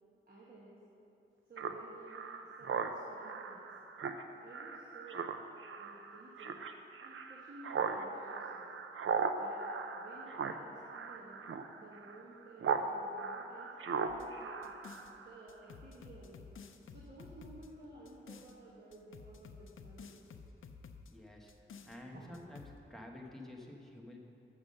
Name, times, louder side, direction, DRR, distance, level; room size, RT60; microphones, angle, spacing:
voice 1, 0.3-0.8 1.5-3.6 4.4-5.3 5.8-6.6 7.0-8.7 9.4-9.6 9.9-11.4 11.7-13.7 14.1-14.7 15.2-16.4 16.9-20.2 22.1-22.3, right 2 dB, 45° right, -5 dB, 1.2 m, -54 dB
Speech synthesizer, 1.6-12.9 13.2-15.4, right 5 dB, 75° right, 0.5 m, -38 dB
sound 1, 14.1-15.1 15.5-18.5 18.9-21.1 21.5-22.0 22.3-22.8, left 5 dB, 75° left, 0.5 m, -52 dB
voice 2, 21.1-24.2, left 1 dB, ahead, -1 dB, 0.9 m, -50 dB
7.0 x 6.5 x 6.4 m, 2.8 s
wide cardioid pair, 115°, 21 cm